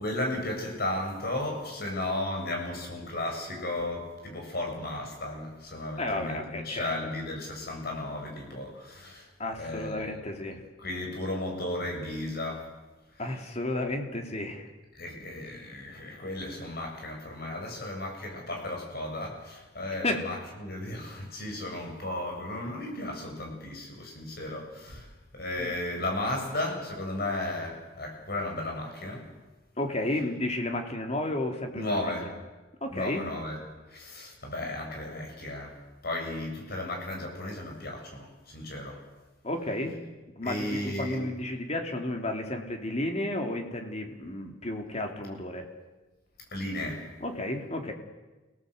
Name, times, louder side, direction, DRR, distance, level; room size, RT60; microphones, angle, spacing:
voice 1, 0.0-9.3 9.5-10.2 10.8-12.6 14.9-25.1 25.3-29.3 31.7-32.3 32.9-33.6 33.9-35.7 36.0-39.0 40.5-41.2 46.5-47.0, left 1 dB, 55° left, 1 dB, 7.3 m, -34 dB
voice 2, 6.0-6.9 9.4-10.6 13.2-14.7 20.0-20.2 25.6-25.8 29.8-32.3 32.8-33.3 39.4-40.0 40.4-45.7 47.2-47.9, left 1 dB, 35° left, 4 dB, 3.3 m, -32 dB
29.5 x 18.5 x 8.1 m, 1.2 s
head